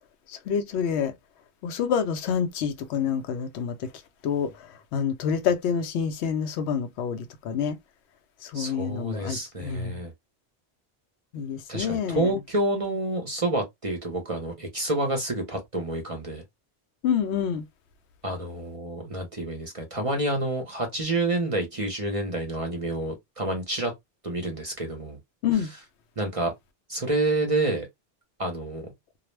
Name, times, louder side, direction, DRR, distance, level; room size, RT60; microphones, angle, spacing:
voice 1, 0.3-1.1 1.6-3.9 4.2-4.5 4.9-7.8 8.4-10.0 11.3-12.3 17.0-17.6 25.4-25.7, left 7 dB, 75° left, 0.8 m, -27 dB
voice 2, 8.5-10.1 11.7-16.4 18.2-23.9 24.2-25.2 25.6-25.7 26.2-26.5 26.9-27.9 28.4-28.9, right 2 dB, 35° right, 0.6 m, -28 dB
2.3 x 2.0 x 3.1 m
omnidirectional pair, 1.1 m